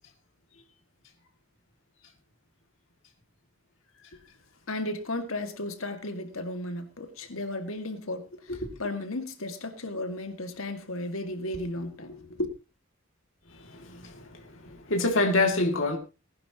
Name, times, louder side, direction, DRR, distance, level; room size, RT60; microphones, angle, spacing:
voice 1, 4.7-8.5 8.8-12.5, left 1 dB, 85° left, 2.1 m, -34 dB
voice 2, 13.5-16.0, left 2 dB, 70° left, 2.5 m, -27 dB
19.5 x 11.0 x 3.0 m
head